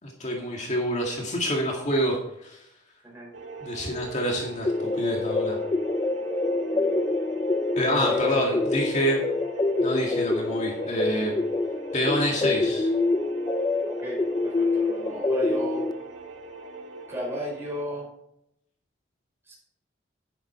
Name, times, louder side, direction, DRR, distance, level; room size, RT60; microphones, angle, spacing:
voice 1, 0.0-2.2 2.4-2.6 3.6-4.7 5.0-5.6 7.8-9.2 9.8-11.3 11.9-12.9, equal, 40° left, -1 dB, 2.1 m, -27 dB
sound 1, 3.3-17.8, right 4 dB, 75° right, 2.0 m, -41 dB
sound 2, 4.6-15.9, left 3 dB, 20° left, 0.4 m, -26 dB
voice 2, 8.0-8.4 14.0-15.8 17.1-18.1 19.5-19.6, equal, 15° right, -3 dB, 5.3 m, -34 dB
10.5 x 10.5 x 4.4 m, 0.79 s
head